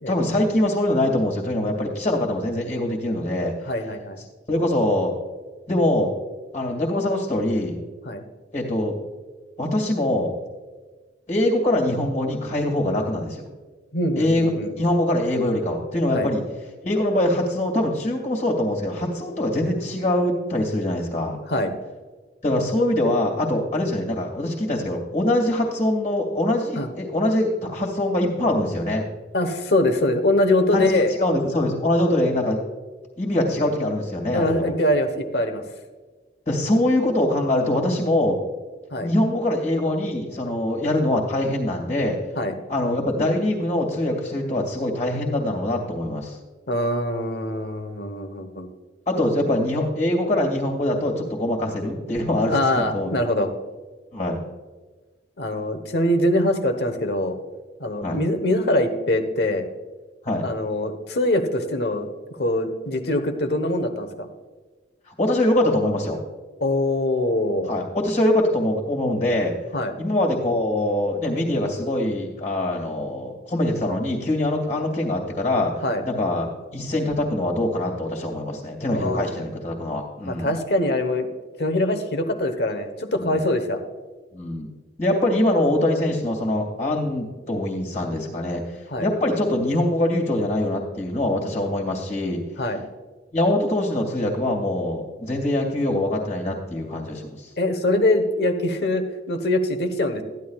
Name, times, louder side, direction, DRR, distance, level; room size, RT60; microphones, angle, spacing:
voice 1, 0.1-3.5 4.5-5.1 5.7-6.1 6.5-7.8 8.5-9.0 9.6-10.3 11.3-13.4 14.2-14.5 14.8-16.4 16.8-21.4 22.4-29.0 30.7-30.9 31.2-32.6 33.2-34.7 36.5-38.4 39.0-42.2 42.7-46.4 49.1-53.1 54.1-54.4 58.0-58.2 60.2-60.5 65.1-66.2 67.7-69.5 70.0-76.5 76.7-80.5 83.2-83.4 84.3-84.7 85.0-92.4 93.3-97.5, left 1 dB, 35° left, -1 dB, 2.2 m, -23 dB
voice 2, 3.7-4.2 8.0-8.2 13.9-14.7 16.1-16.3 21.5-21.7 26.8-26.9 29.3-31.1 34.3-35.6 38.9-39.1 42.4-42.5 46.7-48.7 52.4-53.5 55.4-57.4 57.8-59.7 60.4-64.3 66.6-67.7 69.7-69.9 75.8-76.0 78.9-79.3 80.3-81.3 81.6-83.8 88.9-89.1 92.6-92.8 97.6-100.2, left 1 dB, 60° left, 7 dB, 1.2 m, -23 dB
14.5 x 11.0 x 2.4 m, 1.3 s
head